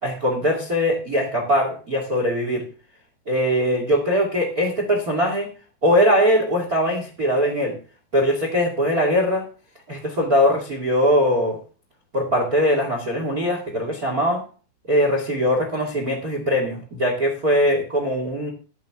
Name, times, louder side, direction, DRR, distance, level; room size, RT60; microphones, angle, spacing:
voice 1, 0.0-2.6 3.2-5.5 5.8-7.8 8.1-9.5 9.9-11.6 12.1-14.4 14.9-18.5, equal, 55° right, 1 dB, 1.0 m, -21 dB
11.5 x 10.5 x 3.6 m, 0.37 s
omnidirectional pair, 5.6 m